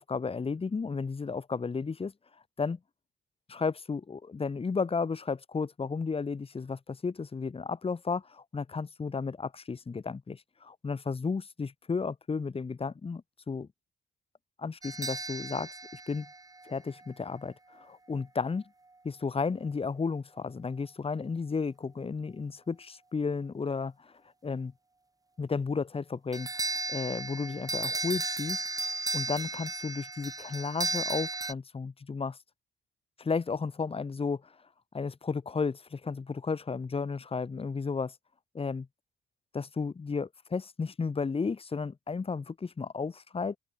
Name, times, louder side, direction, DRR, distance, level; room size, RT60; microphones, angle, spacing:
voice 1, 0.0-2.1 2.6-2.8 3.5-13.2 13.5-13.7 14.6-16.3 16.6-18.6 19.0-24.1 24.4-24.7 25.4-26.5 26.9-28.6 29.1-32.4 33.2-34.5 34.9-38.1 38.5-38.9 39.5-43.6, left 5 dB, 30° left, 1.7 m, -33 dB
sound 1, 14.8-17.1 26.3-31.5, right 3 dB, 20° right, 2.7 m, -35 dB
open air
cardioid pair, 90°, 20 cm